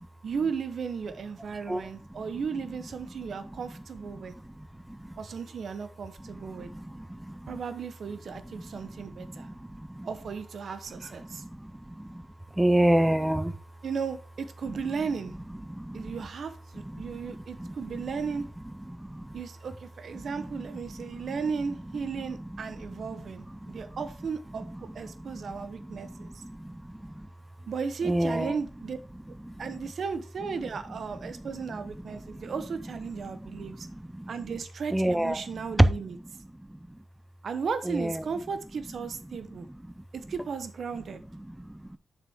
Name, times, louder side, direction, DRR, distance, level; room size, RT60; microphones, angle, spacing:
voice 1, 0.2-4.3 5.2-6.7 7.5-9.5 10.0-11.4 13.8-15.4 15.9-18.5 19.3-26.4 27.7-29.0 29.6-33.9 34.3-36.2 37.4-39.7 40.1-41.2, right 5 dB, 60° right, 0.8 m, -35 dB
voice 2, 1.7-2.2 3.3-3.6 4.1-5.2 6.2-7.6 8.4-10.1 10.9-12.3 12.5-13.6 14.7-14.8 15.6-16.3 16.8-18.5 18.8-19.4 20.1-21.4 22.1-24.0 24.6-27.3 28.0-28.5 29.1-29.8 30.6-30.7 31.2-32.5 33.2-34.6 34.9-35.9 36.3-37.0 37.8-38.3 39.6-40.3 41.3-42.0, right 1 dB, 5° right, 0.4 m, -32 dB
7.0 x 6.0 x 3.5 m
wide cardioid pair, 165°, 0 cm